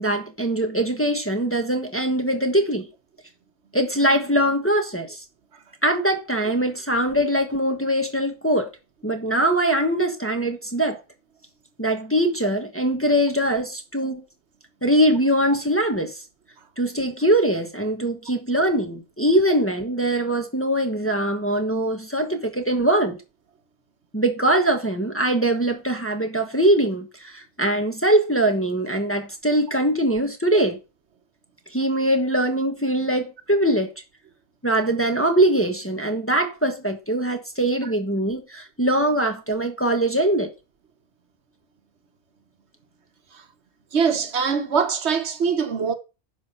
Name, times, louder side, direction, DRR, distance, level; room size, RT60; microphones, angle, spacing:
voice 1, 0.0-2.9 3.7-5.2 5.8-8.7 9.0-11.0 11.8-14.2 14.8-16.2 16.8-23.2 24.1-30.8 31.7-33.9 34.6-40.5, right 1 dB, 10° left, 1.1 m, -22 dB
voice 2, 43.9-45.9, right 6 dB, 70° right, 1.3 m, -23 dB
10.5 x 3.5 x 6.6 m
omnidirectional pair, 1.2 m